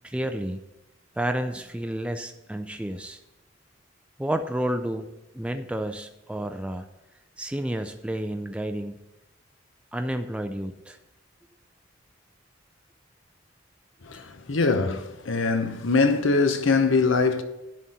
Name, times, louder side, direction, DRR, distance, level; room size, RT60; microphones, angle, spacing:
voice 1, 0.0-0.6 1.2-3.2 4.2-5.0 5.3-6.9 7.4-9.0 9.9-11.0 14.1-14.2, right 1 dB, 5° right, 0.4 m, -30 dB
voice 2, 14.0-17.4, left 4 dB, 75° left, 0.8 m, -23 dB
11.0 x 4.2 x 7.7 m
head